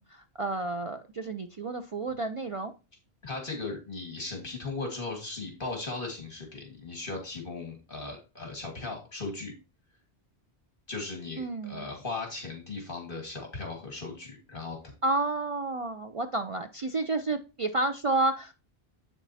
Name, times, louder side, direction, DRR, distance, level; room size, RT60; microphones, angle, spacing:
voice 1, 0.0-2.7 11.4-11.9 15.0-18.5, right 2 dB, 50° right, 8 dB, 0.4 m, -30 dB
voice 2, 3.2-9.5 10.9-14.8, left 3 dB, 55° left, 1 dB, 2.0 m, -37 dB
8.0 x 7.2 x 2.7 m, 0.31 s
omnidirectional pair, 1.1 m